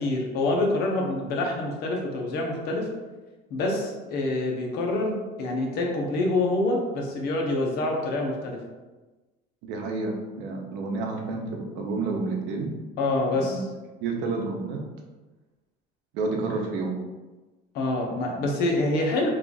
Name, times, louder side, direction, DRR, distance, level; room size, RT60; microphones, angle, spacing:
voice 1, 0.0-2.9 3.5-8.6 13.0-13.7 17.7-19.3, left 2 dB, 55° left, 0 dB, 0.8 m, -26 dB
voice 2, 9.6-12.7 13.3-13.6 14.0-14.8 16.1-16.9, right 3 dB, 70° right, 1 dB, 0.7 m, -30 dB
3.1 x 2.4 x 3.8 m, 1.2 s
cardioid pair, 160°, 19 cm